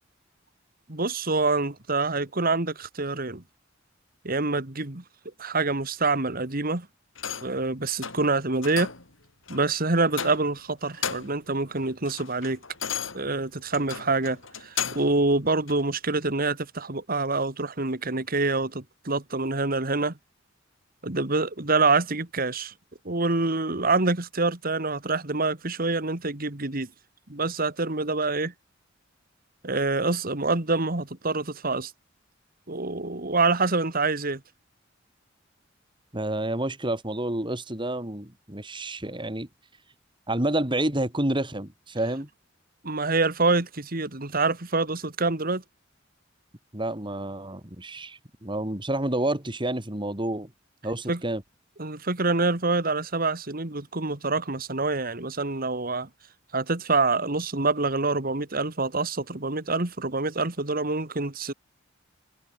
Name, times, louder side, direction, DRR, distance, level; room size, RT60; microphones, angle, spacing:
voice 1, 0.9-3.4 4.2-5.0 5.4-6.9 7.4-8.9 9.5-12.6 13.1-20.1 21.0-22.7 23.0-26.9 27.3-28.5 29.6-31.9 32.7-34.4 42.8-45.6 51.1-51.2 51.8-56.1 56.5-61.5, right 3 dB, 45° right, 2.3 m, -26 dB
sound 1, 7.2-7.6 8.0-8.3 8.6-9.1 9.5-9.7 10.1-10.6 10.9-11.5 11.8-15.2 15.7-15.8, left 7 dB, 80° left, 6.1 m, -34 dB
voice 2, 36.1-39.5 40.3-42.3 46.7-50.5 50.8-51.4, right 1 dB, 25° right, 3.3 m, -29 dB
head